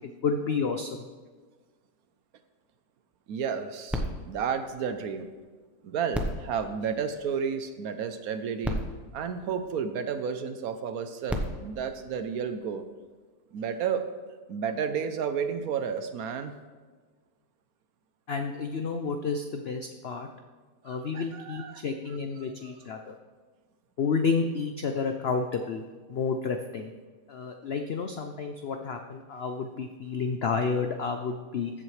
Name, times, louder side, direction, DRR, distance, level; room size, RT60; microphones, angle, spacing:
voice 1, 0.2-1.1 18.3-20.3 20.8-23.1 24.0-25.8 26.1-26.9 27.3-31.7, left 5 dB, 80° left, 5 dB, 0.5 m, -30 dB
voice 2, 3.3-5.3 5.8-8.8 9.1-12.9 13.5-14.1 14.5-16.5 20.9-21.8 22.4-22.8, right 7 dB, 65° right, 9 dB, 1.0 m, -32 dB
sound 1, 3.9-5.5 6.1-7.7 8.3-8.4 8.6-10.2 11.0-12.9 13.6-13.7, equal, ahead, 0.3 m, -36 dB
14.5 x 7.8 x 3.2 m, 1.4 s
omnidirectional pair, 1.8 m